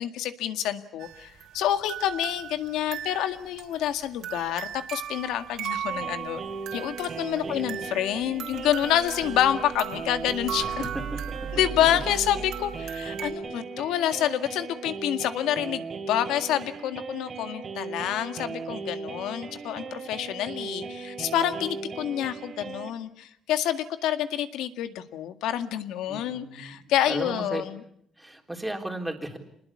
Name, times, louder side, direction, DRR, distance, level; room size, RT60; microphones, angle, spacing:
voice 1, 0.0-6.4 6.7-10.8 11.5-27.7, left 11 dB, 85° left, 9 dB, 2.0 m, -28 dB
sound 1, 1.0-13.3, right 9 dB, 65° right, 3.6 m, -37 dB
sound 2, 5.9-22.9, right 4 dB, 35° right, 3.1 m, -37 dB
voice 2, 10.6-11.5 26.1-26.8 27.1-27.6 28.2-29.4, right 1 dB, 5° right, 3 dB, 3.7 m, -35 dB
27.5 x 20.5 x 8.7 m, 0.70 s
cardioid pair, 145°, 0 cm